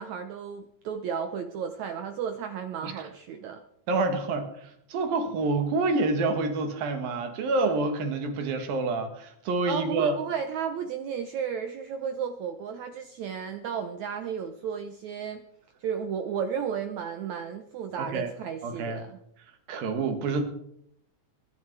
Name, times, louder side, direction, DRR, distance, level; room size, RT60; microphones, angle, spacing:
voice 1, 0.0-3.6 9.7-15.4 15.8-19.2, right 7 dB, 85° right, 8 dB, 1.6 m, -33 dB
voice 2, 3.9-10.2 18.0-18.3 18.6-19.0 19.7-20.4, right 3 dB, 70° right, 7 dB, 3.4 m, -27 dB
22.5 x 10.5 x 4.7 m, 0.71 s
omnidirectional pair, 4.5 m